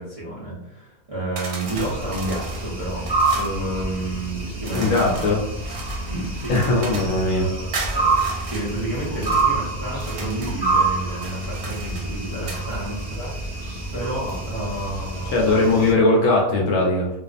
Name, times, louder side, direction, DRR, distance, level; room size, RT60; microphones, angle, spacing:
voice 1, 0.0-5.3 6.1-6.6 7.2-13.7 13.9-15.7, right 2 dB, 55° right, -9 dB, 0.4 m, -31 dB
sound 1, 1.4-3.6 4.6-7.2 7.7-9.5 9.9-10.6 11.1-12.7, right 4 dB, 85° right, 1.2 m, -36 dB
sound 2, 1.7-15.9, right 3 dB, 20° right, 0.9 m, -27 dB
voice 2, 4.7-5.4 6.5-7.5 15.3-17.1, left 2 dB, 70° left, -3 dB, 0.8 m, -19 dB
2.5 x 2.4 x 2.4 m, 0.87 s
omnidirectional pair, 1.7 m